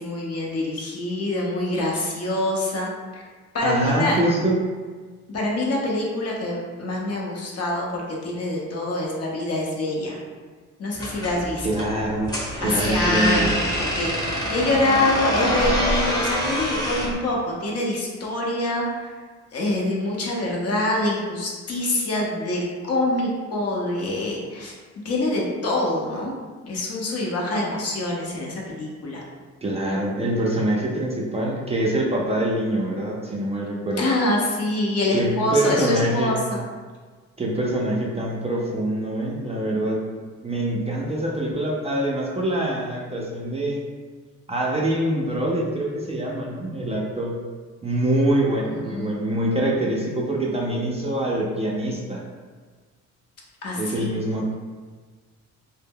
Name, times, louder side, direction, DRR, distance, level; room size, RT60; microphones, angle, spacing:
voice 1, 0.0-3.2 3.5-4.2 5.3-10.2 10.8-11.8 12.6-19.1 19.5-24.8 25.0-26.3 26.6-29.2 34.0-36.6 48.8-49.2 53.6-54.2, left 1 dB, 55° left, -2 dB, 0.7 m, -25 dB
voice 2, 3.6-4.6 11.6-13.5 29.6-34.1 35.1-36.3 37.4-40.0 40.4-43.8 44.5-47.3 47.8-52.2 53.8-54.5, right 1 dB, 20° right, -3 dB, 0.4 m, -24 dB
sound 1, 10.9-17.2, equal, 15° left, 0.7 m, -26 dB
2.0 x 2.0 x 3.5 m, 1.4 s
cardioid pair, 90°, 30 cm